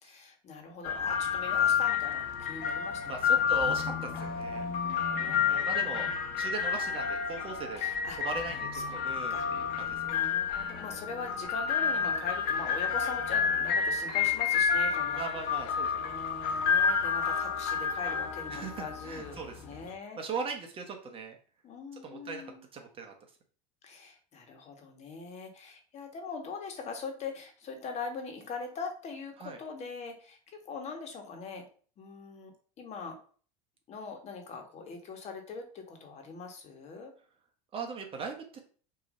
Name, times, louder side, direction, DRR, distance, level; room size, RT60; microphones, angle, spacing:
voice 1, 0.0-3.5 5.1-6.1 7.8-8.2 8.7-8.9 9.3-9.5 10.1-15.2 16.0-20.2 21.6-22.6 23.8-30.4 30.6-31.7 32.0-33.2 33.9-37.1, left 4 dB, 35° left, 4 dB, 1.7 m, -42 dB
sound 1, 0.8-19.9, left 6 dB, 55° left, 1.4 m, -30 dB
voice 2, 3.1-4.7 5.5-7.8 8.2-10.0 15.1-16.1 18.5-19.5 20.2-21.4 22.0-22.4 22.7-23.1 29.4-29.6 37.7-38.6, right 5 dB, 30° right, 3 dB, 1.3 m, -39 dB
6.2 x 3.2 x 5.5 m, 0.43 s
supercardioid pair, 130°, 18 cm